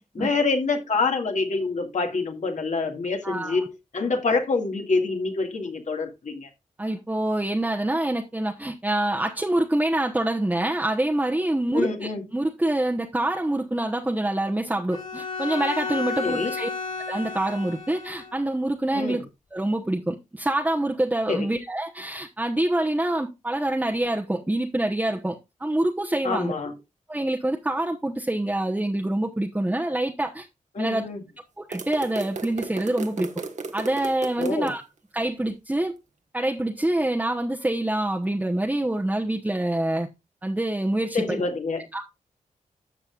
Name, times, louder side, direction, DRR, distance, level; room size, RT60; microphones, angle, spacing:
voice 1, 0.1-6.5 11.7-12.2 16.2-16.5 18.9-19.2 21.3-21.5 26.2-26.7 30.7-31.2 34.4-34.7 41.1-41.9, left 3 dB, 65° left, 2.1 m, -26 dB
voice 2, 3.2-3.7 6.8-16.7 17.1-19.2 19.5-26.5 27.1-30.5 30.8-31.1 31.6-33.3 33.7-34.8 35.1-35.9 36.3-40.1 40.4-41.4 41.9-42.0, right 1 dB, 10° right, 1.0 m, -26 dB
Bowed string instrument, 14.9-18.4, left 4 dB, 45° left, 3.0 m, -32 dB
sound 1, 31.7-34.7, right 4 dB, 60° right, 1.3 m, -35 dB
12.5 x 6.8 x 2.4 m
cardioid pair, 70°, 14 cm